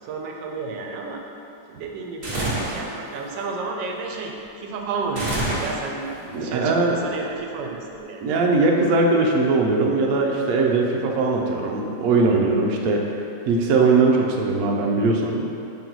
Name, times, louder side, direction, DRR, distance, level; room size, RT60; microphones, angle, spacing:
voice 1, 0.0-1.2 1.7-6.1 6.4-8.2, right 4 dB, 85° right, 1 dB, 1.3 m, -31 dB
sound 1, 2.2-2.9 5.2-6.1, right 1 dB, 35° right, 1.3 m, -26 dB
voice 2, 6.3-7.0 8.2-13.0 13.5-15.5, right 3 dB, 65° right, -1 dB, 1.0 m, -20 dB
5.5 x 3.9 x 4.5 m, 2.8 s
omnidirectional pair, 1.9 m